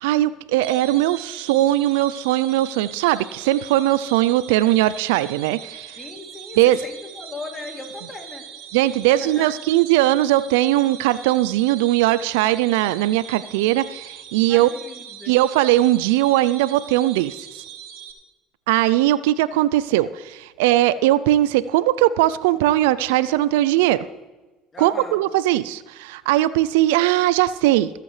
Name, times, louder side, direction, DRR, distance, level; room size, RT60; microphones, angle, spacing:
voice 1, 0.0-5.9 6.6-6.8 8.7-14.7 15.3-17.4 18.7-24.1 24.8-27.9, right 15 dB, 80° right, 17 dB, 0.4 m, -19 dB
sound 1, 0.6-18.1, right 9 dB, 65° right, 2.1 m, -40 dB
voice 2, 6.0-8.5 9.2-9.5 14.5-15.4 24.7-25.2, left 3 dB, 30° left, 2 dB, 2.9 m, -38 dB
22.5 x 8.2 x 3.3 m, 1.2 s
hypercardioid pair, 70°, 0 cm